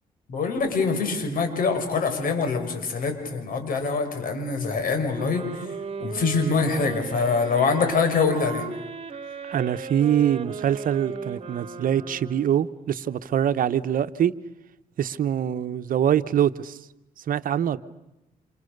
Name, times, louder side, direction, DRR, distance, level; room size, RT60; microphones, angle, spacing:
voice 1, 0.3-5.7 6.0-8.6, left 4 dB, 70° left, 6 dB, 6.0 m, -24 dB
sound 1, 5.1-12.8, right 5 dB, 40° right, 2.3 m, -36 dB
voice 2, 9.5-14.3 15.0-16.8 17.3-17.8, right 9 dB, 65° right, 12 dB, 1.1 m, -24 dB
29.5 x 27.5 x 6.8 m, 0.95 s
cardioid pair, 75°, 15 cm